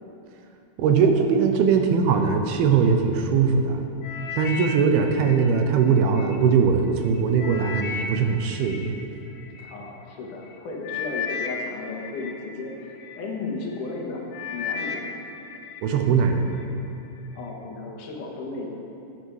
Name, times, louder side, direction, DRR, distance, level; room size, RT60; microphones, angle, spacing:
voice 1, 0.8-3.8 4.4-8.9 15.8-16.5, right 6 dB, 75° right, 5 dB, 2.6 m, -20 dB
sound 1, 4.0-6.4 6.9-9.7 10.4-10.6 10.8-13.2 13.7-14.0 14.3-15.8 16.2-16.7 17.3-17.4, left 6 dB, 80° left, 1.8 m, -35 dB
voice 2, 9.7-14.2 14.5-15.1 17.3-18.7, left 3 dB, 60° left, -1 dB, 2.7 m, -34 dB
14.5 x 10.5 x 4.7 m, 2.7 s
omnidirectional pair, 4.7 m